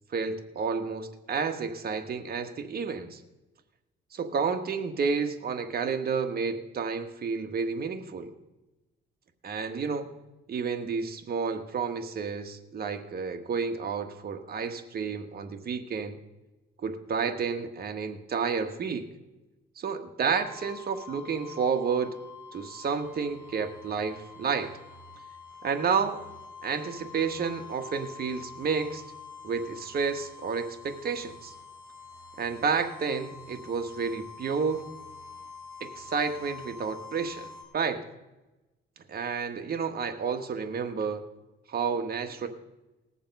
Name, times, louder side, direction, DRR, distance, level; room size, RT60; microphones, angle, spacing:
voice 1, 0.1-3.2 4.1-8.3 9.4-10.1 10.5-16.1 16.8-19.1 19.8-22.1 22.5-24.7 25.6-26.2 26.6-29.0 29.4-31.5 32.4-34.8 35.8-37.5 37.7-38.0 39.1-41.2 41.7-42.5, right 5 dB, 50° right, 6 dB, 1.4 m, -30 dB
sound 1, 20.3-37.6, left 5 dB, 10° right, 3.7 m, -47 dB
19.5 x 7.0 x 5.4 m, 1.0 s
cardioid pair, 90°, 20 cm